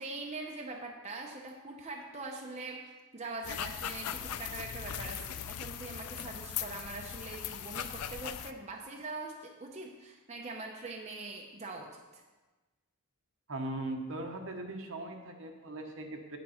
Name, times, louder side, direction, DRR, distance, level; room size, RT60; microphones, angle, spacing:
voice 1, 0.0-12.2, right 3 dB, 30° right, 0 dB, 0.8 m, -43 dB
sound 1, 3.4-8.5, left 9 dB, 85° left, 0.5 m, -39 dB
voice 2, 13.5-16.4, right 2 dB, 60° right, 3 dB, 1.1 m, -39 dB
8.8 x 8.1 x 4.3 m, 1.2 s
head